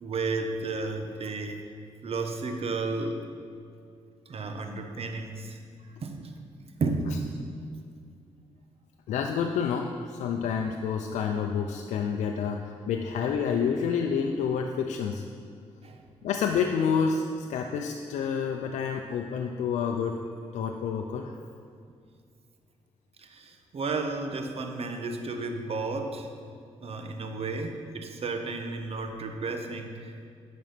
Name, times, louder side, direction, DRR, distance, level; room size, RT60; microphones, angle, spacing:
voice 1, 0.0-1.7 2.0-3.3 4.3-5.6 6.0-6.3 6.8-7.2 15.8-16.0 23.2-26.3 26.8-30.3, right 3 dB, 55° right, 5 dB, 1.1 m, -33 dB
voice 2, 9.1-15.2 16.2-17.2 17.5-20.2 20.5-21.4, left 6 dB, 85° left, 3 dB, 0.5 m, -28 dB
9.2 x 6.2 x 5.8 m, 2.2 s
cardioid pair, 65°, 12 cm